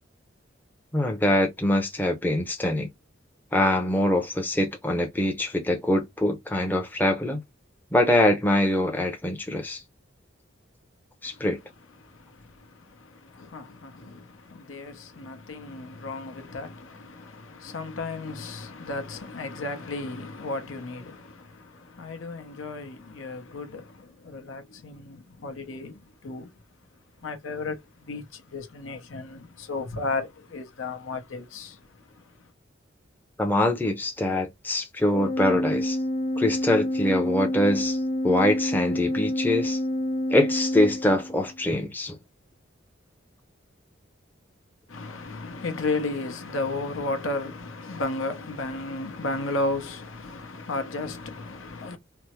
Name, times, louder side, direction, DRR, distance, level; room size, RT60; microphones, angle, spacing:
voice 1, 0.9-2.9 3.5-7.4 7.9-9.8 11.2-11.6 33.4-36.0 36.4-39.8 40.3-42.2, left 1 dB, 10° left, 0.5 m, -24 dB
voice 2, 11.2-11.5 12.0-26.5 27.2-32.5 44.9-52.0, left 2 dB, 85° left, 0.8 m, -34 dB
Organ, 35.1-41.6, left 1 dB, 30° left, 1.0 m, -28 dB
3.4 x 2.1 x 2.9 m
head